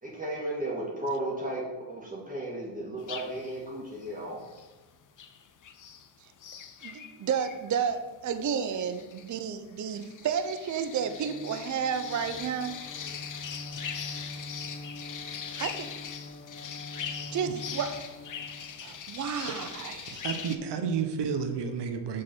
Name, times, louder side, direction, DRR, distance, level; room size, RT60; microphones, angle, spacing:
voice 1, 0.0-4.4, right 1 dB, 15° right, -4 dB, 1.9 m, -34 dB
sound 1, 3.0-3.6 4.0-4.8 5.2-6.1 6.4-20.6, left 7 dB, 45° left, 0.8 m, -41 dB
voice 2, 6.8-12.8 15.6-15.9 17.3-18.1 18.8-20.2, right 7 dB, 40° right, 10 dB, 0.7 m, -31 dB
Bowed string instrument, 10.8-19.2, left 2 dB, 20° left, 1.2 m, -45 dB
voice 3, 20.2-22.2, right 6 dB, 60° right, 7 dB, 1.0 m, -31 dB
6.5 x 3.9 x 6.0 m, 1.2 s
supercardioid pair, 65°, 46 cm